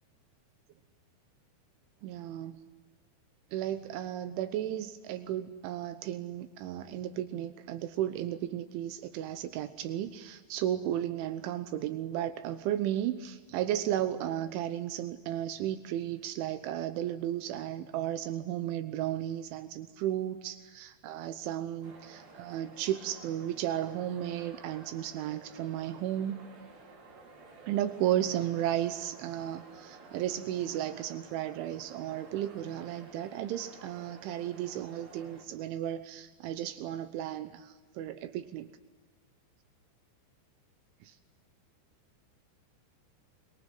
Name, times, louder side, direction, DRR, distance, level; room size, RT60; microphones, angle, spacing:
voice 1, 2.0-2.6 3.5-26.4 27.7-38.7 41.0-41.2, right 11 dB, 80° right, 10 dB, 3.4 m, -34 dB
sound 1, 21.8-35.4, right 3 dB, 60° right, 6.5 m, -53 dB
25.5 x 23.0 x 9.4 m, 1.3 s
omnidirectional pair, 5.5 m